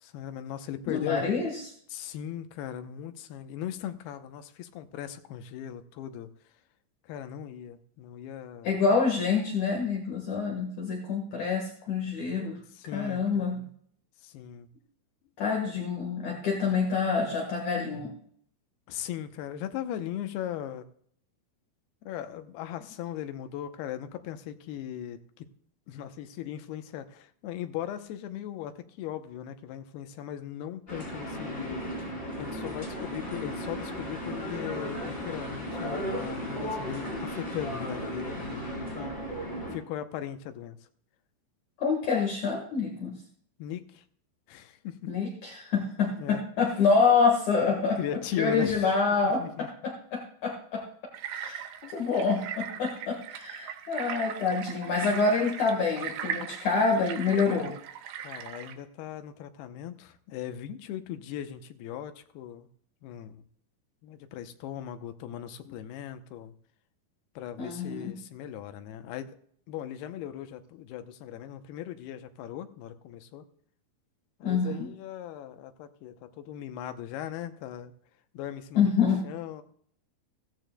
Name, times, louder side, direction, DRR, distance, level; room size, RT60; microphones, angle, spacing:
voice 1, 0.0-1.4 1.9-6.3 7.1-8.7 12.8-13.7 14.2-14.7 18.9-20.9 22.1-25.5 25.9-31.8 32.4-39.1 39.7-40.8 43.6-44.0 44.5-45.1 46.2-46.8 48.0-48.9 49.2-49.7 51.8-51.9 58.2-62.7 63.0-63.4 64.0-66.5 67.4-69.3 69.7-73.4 74.4-77.9 78.3-78.8 79.2-79.6, left 11 dB, 85° left, 9 dB, 2.7 m, -38 dB
voice 2, 0.9-1.6 8.6-12.6 12.9-13.6 15.4-18.1 41.8-43.2 45.1-48.0 48.4-50.8 51.3-51.6 51.9-57.7 67.6-68.1 74.4-74.9 78.7-79.3, left 5 dB, 60° left, 0 dB, 2.6 m, -27 dB
sound 1, 30.9-39.8, equal, 15° left, 3.8 m, -35 dB
sound 2, 51.1-58.7, right 9 dB, 90° right, 2.9 m, -39 dB
16.0 x 14.0 x 2.2 m, 0.64 s
omnidirectional pair, 4.5 m